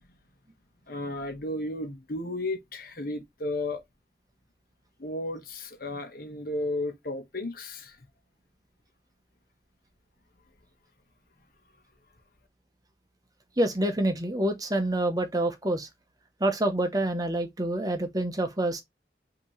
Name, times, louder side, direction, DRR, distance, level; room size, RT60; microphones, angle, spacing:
voice 1, 0.9-3.8 5.0-8.0, left 2 dB, 55° left, 1.1 m, -33 dB
voice 2, 13.6-15.9 16.4-18.8, right 1 dB, 20° right, 0.7 m, -27 dB
5.9 x 2.9 x 3.0 m
head